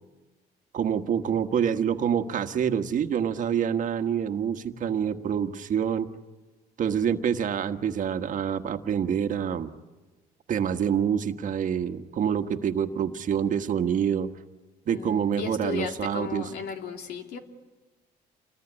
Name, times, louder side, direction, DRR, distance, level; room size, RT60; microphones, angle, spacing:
voice 1, 0.7-6.1 6.8-9.7 10.5-14.3 14.9-16.5, right 8 dB, 50° right, 7 dB, 1.5 m, -26 dB
voice 2, 14.9-17.4, left 6 dB, 75° left, 5 dB, 2.8 m, -35 dB
28.5 x 20.5 x 9.9 m, 1.2 s
cardioid pair, 110°, 17 cm